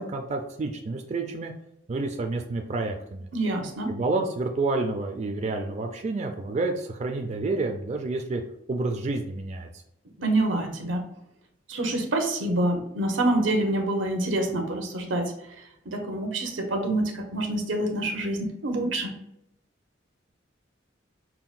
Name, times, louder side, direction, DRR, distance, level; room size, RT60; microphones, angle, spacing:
voice 1, 0.0-1.5 1.9-3.2 3.9-8.4 8.7-9.8, right 3 dB, 40° right, 3 dB, 0.4 m, -29 dB
voice 2, 3.3-3.9 10.2-11.0 11.7-15.3 15.9-19.1, right 1 dB, 90° right, 3 dB, 0.9 m, -26 dB
5.6 x 2.1 x 2.5 m, 0.78 s
head